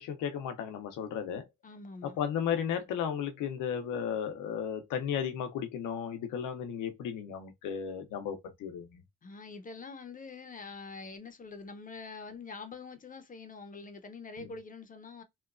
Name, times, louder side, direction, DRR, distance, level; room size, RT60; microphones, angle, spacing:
voice 1, 0.0-1.5 2.0-9.0 14.4-14.5, left 8 dB, 90° left, 0.7 m, -34 dB
voice 2, 1.6-2.2 9.2-15.2, left 4 dB, 25° left, 0.6 m, -45 dB
2.9 x 2.2 x 2.4 m
cardioid pair, 90°, 30 cm